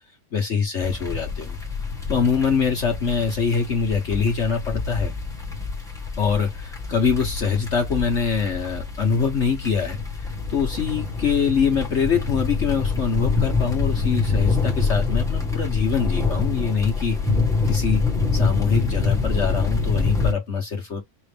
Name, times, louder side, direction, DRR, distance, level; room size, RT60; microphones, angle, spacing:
voice 1, 0.3-1.6 2.1-5.1 6.2-17.2 17.6-18.0 18.3-21.0, left 6 dB, 50° left, 1.3 m, -24 dB
sound 1, 0.8-20.3, left 4 dB, ahead, 1.3 m, -26 dB
6.0 x 2.5 x 3.4 m
omnidirectional pair, 1.7 m